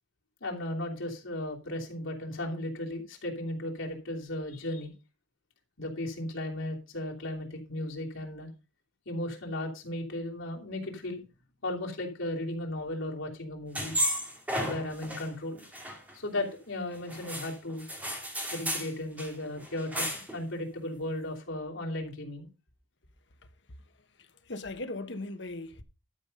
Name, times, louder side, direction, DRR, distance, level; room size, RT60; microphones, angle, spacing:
voice 1, 0.4-4.9 5.8-8.5 9.0-11.2 11.6-14.0 14.6-15.7 16.1-17.8 18.5-20.0 20.3-22.5, left 1 dB, 80° left, 3.0 m, -35 dB
sound 1, 13.7-15.3 15.5-16.5 17.1-18.9 19.2-19.3 19.6-20.4, equal, 10° right, 2.5 m, -33 dB
voice 2, 24.2-25.8, left 2 dB, 60° left, 1.1 m, -38 dB
12.0 x 5.4 x 5.4 m
head